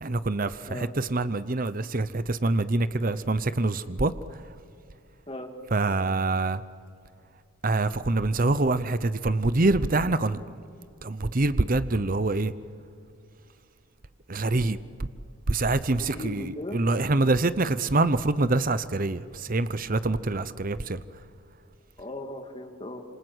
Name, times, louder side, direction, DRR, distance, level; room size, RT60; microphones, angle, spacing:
voice 1, 0.0-4.1 5.7-6.6 7.6-10.4 11.0-12.5 14.3-14.8 15.5-21.0, right 2 dB, 40° right, 14 dB, 0.8 m, -25 dB
voice 2, 16.0-16.8 22.0-23.0, left 1 dB, 25° left, 4 dB, 2.3 m, -37 dB
27.5 x 26.0 x 8.1 m, 2.3 s
head